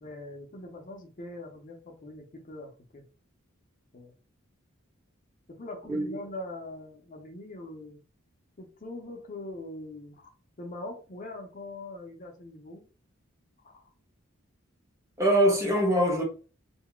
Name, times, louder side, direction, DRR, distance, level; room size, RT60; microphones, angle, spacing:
voice 1, 0.0-3.0 3.9-4.1 5.5-8.0 8.6-10.3 10.6-12.8 13.6-13.8, left 2 dB, 40° left, 0.6 m, -42 dB
voice 2, 15.2-16.2, equal, 15° right, 0.7 m, -23 dB
2.3 x 2.0 x 3.6 m
head